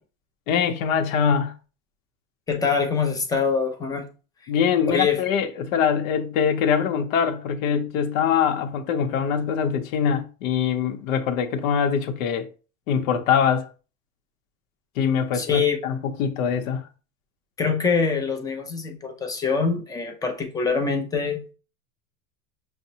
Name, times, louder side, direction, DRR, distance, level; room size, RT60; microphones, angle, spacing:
voice 1, 0.5-1.5 4.5-12.5 12.9-13.7 15.0-16.9, left 7 dB, 75° left, 0.8 m, -23 dB
voice 2, 2.5-4.1 4.9-5.2 15.3-15.8 17.6-21.5, left 5 dB, 10° left, 0.4 m, -24 dB
5.7 x 2.1 x 2.8 m
supercardioid pair, 135°, 42 cm